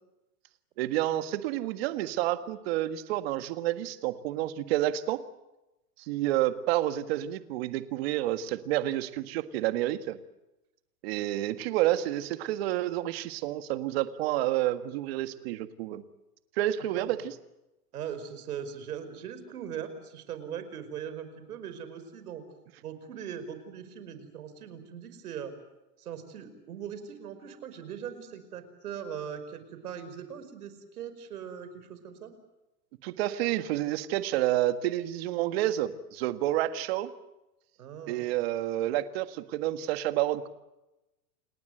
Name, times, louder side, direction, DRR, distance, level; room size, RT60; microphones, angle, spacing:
voice 1, 0.8-5.2 6.0-10.2 11.0-16.0 16.6-17.3 33.0-37.1 38.1-40.5, right 14 dB, 40° right, 10 dB, 1.7 m, -29 dB
voice 2, 17.9-22.4 22.8-25.5 26.0-32.3 37.8-38.4, right 8 dB, 70° right, 11 dB, 5.3 m, -40 dB
29.5 x 19.5 x 7.9 m, 0.97 s
hypercardioid pair, 155°, 46 cm